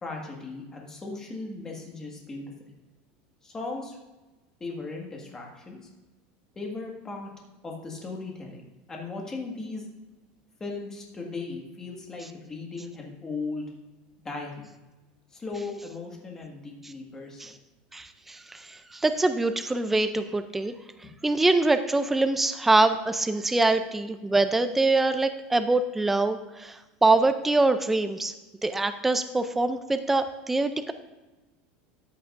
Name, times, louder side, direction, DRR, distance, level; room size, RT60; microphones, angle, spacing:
voice 1, 0.0-2.4 3.4-4.0 4.6-5.8 6.5-7.3 7.6-8.6 8.9-9.9 10.6-13.7 14.2-14.7 15.3-17.5 21.0-21.1, left 3 dB, 15° left, 0 dB, 1.6 m, -37 dB
voice 2, 17.9-20.7 21.2-28.3 28.6-30.9, right 2 dB, 5° right, 9 dB, 0.4 m, -24 dB
13.5 x 8.5 x 2.5 m, 1.1 s
supercardioid pair, 170°, 4 cm